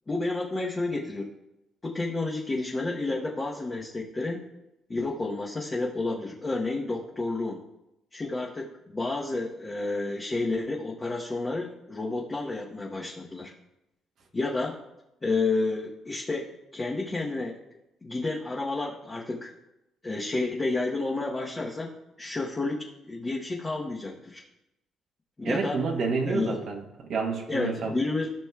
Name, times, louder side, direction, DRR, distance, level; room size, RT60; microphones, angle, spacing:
voice 1, 0.1-1.3 1.8-4.4 4.9-7.6 8.1-13.5 14.3-14.8 15.2-17.6 18.0-19.5 20.0-21.9 22.2-24.4 25.4-25.8 26.2-26.6 27.5-28.3, left 3 dB, 20° left, -3 dB, 0.9 m, -30 dB
voice 2, 25.4-28.0, right 4 dB, 60° right, 1 dB, 1.2 m, -29 dB
15.0 x 6.1 x 2.3 m, 0.90 s
cardioid pair, 120°, 0 cm